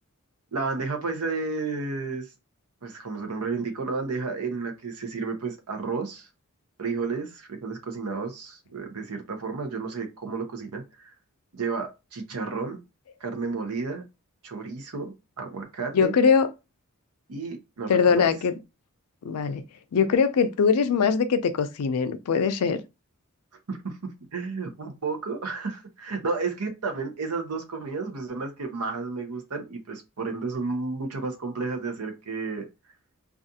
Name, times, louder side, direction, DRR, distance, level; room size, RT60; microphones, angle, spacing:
voice 1, 0.5-2.3 2.8-6.3 6.8-11.1 11.5-12.8 13.2-14.0 14.4-16.1 17.3-17.9 18.2-18.3 23.7-24.0 24.3-32.7, right 4 dB, 85° right, 0.7 m, -32 dB
voice 2, 15.9-16.5 17.9-18.6 19.2-19.6 19.9-22.8, left 6 dB, 85° left, 0.4 m, -22 dB
2.4 x 2.4 x 2.7 m
head